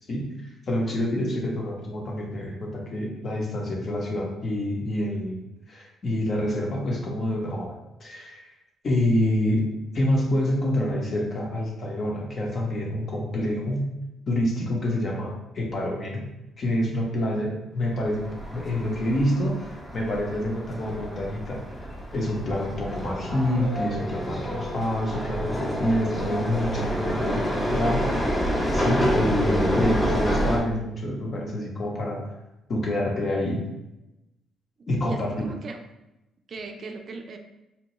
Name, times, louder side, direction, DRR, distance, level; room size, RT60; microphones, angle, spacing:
voice 1, 0.7-5.4 5.7-8.5 8.8-13.9 14.3-16.3 16.6-28.4 28.7-32.2 32.7-33.6 34.9-35.5, left 1 dB, 45° left, -1 dB, 0.9 m, -27 dB
sound 1, 18.0-30.6, equal, 20° left, 0.8 m, -28 dB
voice 2, 27.3-27.6 35.0-35.8 36.5-37.4, right 3 dB, 50° right, 5 dB, 0.4 m, -38 dB
4.3 x 2.2 x 3.0 m, 0.94 s
cardioid pair, 90°, 0 cm